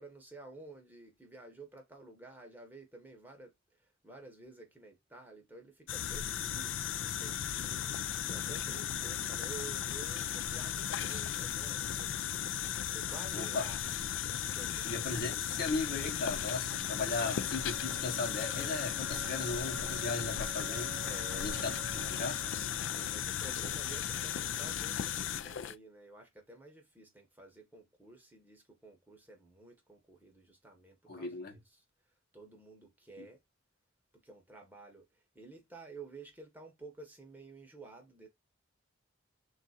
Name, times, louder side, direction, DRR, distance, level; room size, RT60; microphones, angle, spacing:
voice 1, 0.0-13.8 14.4-14.9 17.0-17.3 21.0-21.6 22.9-31.8 32.3-33.4 34.2-38.3, right 3 dB, 10° right, 0.8 m, -52 dB
sound 1, 5.9-25.8, left 10 dB, 65° left, 0.3 m, -36 dB
voice 2, 13.3-13.7 14.8-20.9 21.3-22.4 31.1-31.6 33.2-33.3, left 3 dB, 50° left, 0.9 m, -37 dB
sound 2, 15.7-23.7, right 6 dB, 80° right, 0.5 m, -50 dB
3.6 x 2.4 x 4.1 m
head